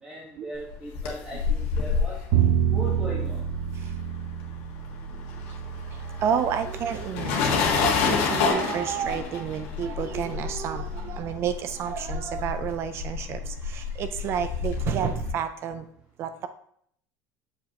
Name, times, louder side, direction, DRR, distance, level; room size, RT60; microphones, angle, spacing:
voice 1, 0.0-2.2 2.7-3.4, right 1 dB, 10° right, -6 dB, 1.2 m, -38 dB
sound 1, 0.7-4.3 4.6-15.3, left 5 dB, 80° left, 1.5 m, -29 dB
Bowed string instrument, 2.3-8.5, right 9 dB, 75° right, 0.9 m, -29 dB
voice 2, 6.1-15.8 16.2-16.5, right 8 dB, 35° right, 10 dB, 0.4 m, -30 dB
6.9 x 5.2 x 2.9 m, 0.65 s
cardioid pair, 165°, 7 cm